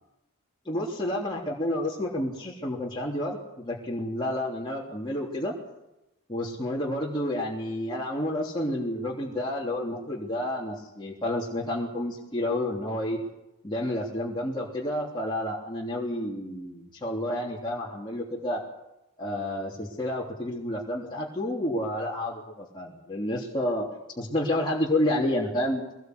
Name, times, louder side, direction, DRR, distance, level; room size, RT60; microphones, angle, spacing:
voice 1, 0.7-5.6 6.3-13.2 13.6-18.6 19.2-23.9 24.2-25.8, left 1 dB, 20° left, -4 dB, 3.5 m, -30 dB
23.5 x 19.5 x 8.2 m, 0.92 s
head